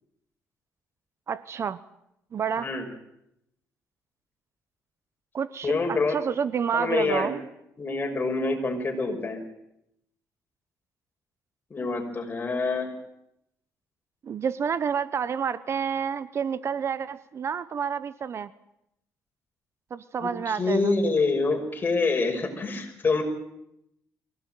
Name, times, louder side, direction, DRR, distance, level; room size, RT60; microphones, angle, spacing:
voice 1, 1.3-1.8 2.3-2.7 5.3-7.4 14.2-18.5 19.9-21.0, right 7 dB, 45° right, 16 dB, 0.9 m, -29 dB
voice 2, 5.6-6.1 6.7-7.3 7.8-9.4 11.7-12.9 20.2-23.2, left 3 dB, 30° left, 3 dB, 5.9 m, -26 dB
23.0 x 17.0 x 9.2 m, 0.80 s
cardioid pair, 105°, 6 cm